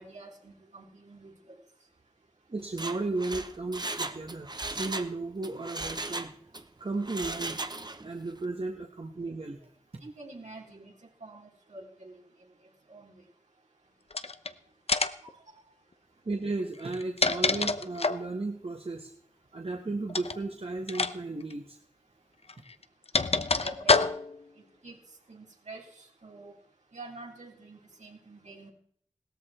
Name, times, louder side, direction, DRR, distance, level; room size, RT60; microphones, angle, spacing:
voice 1, 0.0-1.3 10.0-10.9 11.2-12.2 12.9-13.1 15.2-15.3 23.6-24.0 24.8-25.0 25.3-26.5 26.9-28.7, right 2 dB, 80° right, -1 dB, 4.3 m, -46 dB
voice 2, 2.5-6.3 6.8-7.6 8.0-9.7 16.2-19.1 19.5-21.8, right 3 dB, 55° right, 2 dB, 1.6 m, -34 dB
Mechanisms, 2.6-5.1 5.4-6.6 7.0-8.1 8.4-8.5, right 2 dB, 35° right, 1.2 m, -36 dB
sound 1, 14.1-14.5 14.9-15.3 16.8-18.3 20.1-20.4 20.9-21.1 21.4-21.5 22.5-24.4, left 4 dB, 60° left, 0.9 m, -27 dB
17.5 x 13.5 x 4.5 m, 0.63 s
wide cardioid pair, 60°, 12 cm